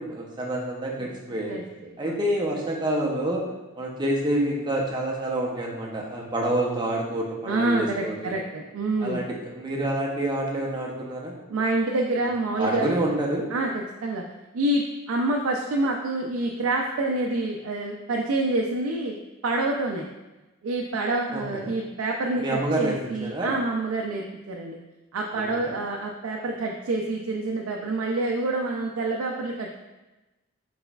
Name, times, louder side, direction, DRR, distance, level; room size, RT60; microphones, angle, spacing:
voice 1, 0.0-1.6 2.0-3.4 3.8-8.3 9.0-11.3 12.6-13.4 21.3-21.8 22.4-22.9 23.2-23.5 25.3-25.7, right 1 dB, 20° right, -2 dB, 0.6 m, -28 dB
voice 2, 1.0-2.2 7.4-9.2 11.5-12.9 13.5-14.2 14.5-19.2 19.4-20.1 20.6-24.8 25.1-29.7, right 2 dB, 75° right, 0 dB, 0.4 m, -27 dB
4.5 x 4.1 x 2.3 m, 1.1 s
head